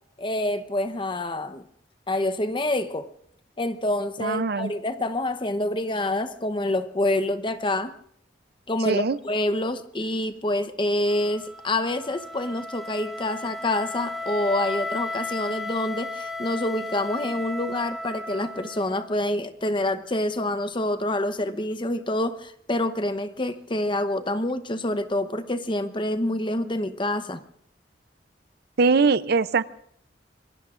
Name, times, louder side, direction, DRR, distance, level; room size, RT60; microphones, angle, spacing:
voice 1, 0.2-1.6 2.1-3.1 3.6-8.0 8.7-27.4, left 1 dB, 30° left, 10 dB, 0.9 m, -27 dB
voice 2, 4.2-4.7 8.9-9.2 28.8-29.6, right 4 dB, 60° right, 15 dB, 0.6 m, -21 dB
Wind instrument woodwind instrument, 11.1-19.1, left 2 dB, ahead, 1.4 m, -35 dB
27.0 x 21.5 x 2.5 m, 0.69 s
head